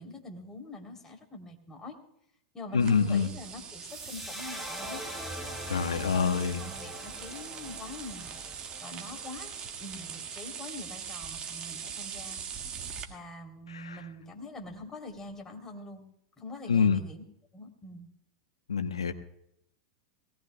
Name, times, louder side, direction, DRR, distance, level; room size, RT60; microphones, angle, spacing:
voice 1, 0.0-2.0 2.5-5.0 6.0-8.4 8.8-12.4 13.1-16.0 16.4-17.2 17.5-18.1, left 2 dB, 20° left, 2 dB, 3.1 m, -44 dB
voice 2, 2.7-3.3 5.7-6.6 13.7-14.0 16.7-17.0 18.7-19.1, left 5 dB, 85° left, 8 dB, 1.1 m, -26 dB
sound 1, 2.8-13.0, right 7 dB, 35° right, 1.8 m, -42 dB
sound 2, 3.9-10.2, equal, 5° right, 7.3 m, -43 dB
22.5 x 18.5 x 2.2 m, 0.75 s
hypercardioid pair, 100°, 3 cm